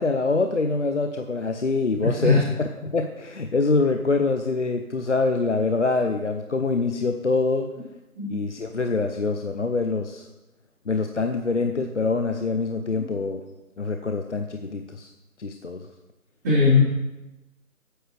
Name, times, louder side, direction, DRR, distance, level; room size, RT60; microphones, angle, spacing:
voice 1, 0.0-2.4 2.8-7.7 8.3-10.3 10.9-13.4 13.8-15.1 15.4-15.8, left 3 dB, 50° left, 6 dB, 0.8 m, -25 dB
voice 2, 2.0-2.4 8.1-8.3 16.4-16.8, left 3 dB, 10° right, -12 dB, 4.1 m, -19 dB
15.0 x 9.4 x 3.4 m, 1.0 s
figure-of-eight pair, 175°, 45 cm